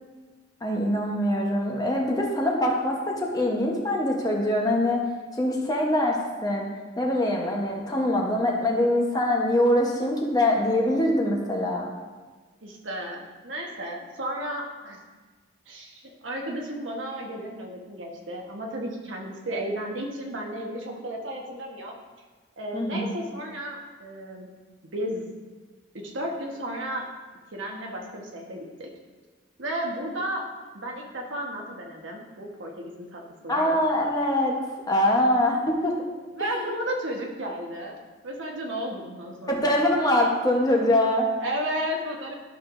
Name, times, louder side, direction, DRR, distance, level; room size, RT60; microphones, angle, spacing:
voice 1, 0.6-5.0 5.3-6.7 7.0-11.9 22.7-23.1 33.5-34.5 34.9-35.9 36.4-36.6 39.5-41.3, left 1 dB, 20° left, -1 dB, 1.0 m, -23 dB
voice 2, 12.6-15.0 15.7-21.9 22.6-24.5 24.9-25.3 25.9-27.1 27.5-28.9 29.6-30.5 30.7-33.8 36.3-38.0 38.2-39.6 41.4-42.3, right 1 dB, 80° right, -1 dB, 1.3 m, -33 dB
12.0 x 6.6 x 2.6 m, 1.4 s
head